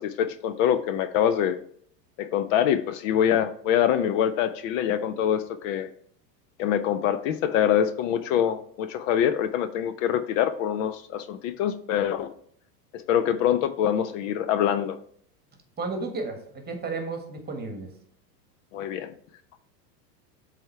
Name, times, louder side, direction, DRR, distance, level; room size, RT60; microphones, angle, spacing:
voice 1, 0.0-1.6 2.2-5.9 6.6-12.3 12.9-15.0 18.7-19.1, left 9 dB, 55° left, 11 dB, 0.6 m, -25 dB
voice 2, 15.8-17.9, right 3 dB, 20° right, 4 dB, 1.4 m, -33 dB
7.6 x 3.5 x 4.5 m, 0.62 s
hypercardioid pair, 115°, 49 cm